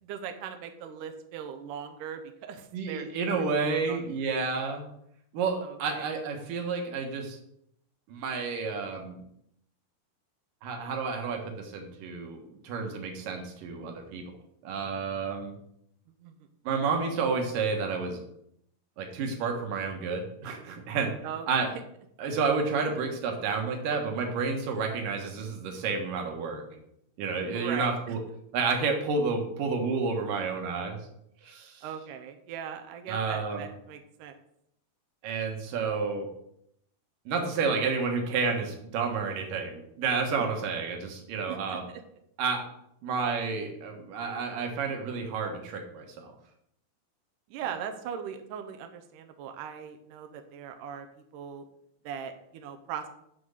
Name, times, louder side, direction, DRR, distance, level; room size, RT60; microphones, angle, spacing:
voice 1, 0.0-4.0 4.3-4.5 5.6-6.1 16.2-16.3 21.2-21.7 27.5-28.2 31.8-34.4 40.5-40.7 41.5-42.0 47.5-51.1 51.3-51.6 52.0-53.1, right 8 dB, 85° right, 5 dB, 1.8 m, -40 dB
voice 2, 2.7-4.8 5.3-7.4 8.1-9.2 10.6-14.2 14.6-15.5 16.6-18.2 19.0-21.1 21.5-21.7 22.2-26.6 27.2-28.2 28.5-31.0 31.4-31.8 33.1-33.7 35.2-36.3 37.3-41.8 42.4-42.6 43.0-46.3, right 4 dB, 65° right, 3 dB, 2.7 m, -30 dB
7.2 x 6.1 x 6.6 m, 0.74 s
omnidirectional pair, 4.9 m